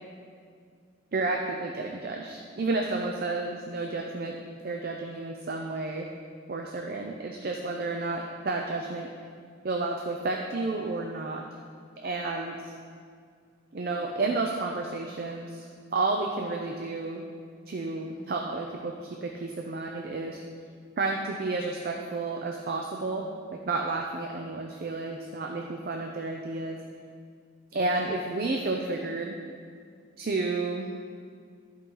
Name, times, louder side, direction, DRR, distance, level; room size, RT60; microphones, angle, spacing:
voice 1, 1.1-4.4 4.6-6.1 6.5-9.1 9.6-11.4 12.0-12.7 13.7-17.2 17.7-20.4 21.0-26.8 27.7-29.4 30.2-30.9, right 3 dB, 50° right, 1 dB, 0.5 m, -31 dB
13.0 x 4.7 x 3.8 m, 2.1 s
head